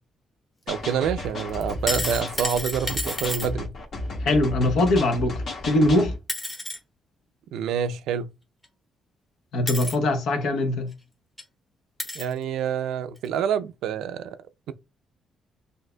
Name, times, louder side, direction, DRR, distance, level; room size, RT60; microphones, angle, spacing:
sound 1, 0.7-6.2, left 2 dB, 60° left, 1.4 m, -33 dB
voice 1, 0.7-3.7 7.5-8.3 12.1-14.4, right 8 dB, 85° right, 0.4 m, -27 dB
sound 2, 1.6-3.5 5.7-5.8 6.3-6.8 8.6-8.7 9.7-10.0 10.9-11.0 11.4-11.5 12.0-12.3 13.2-13.3, left 1 dB, 15° left, 1.0 m, -30 dB
voice 2, 4.2-6.1 9.5-10.9, left 1 dB, 75° left, 0.9 m, -22 dB
6.3 x 2.6 x 2.2 m
cardioid pair, 90°, 0 cm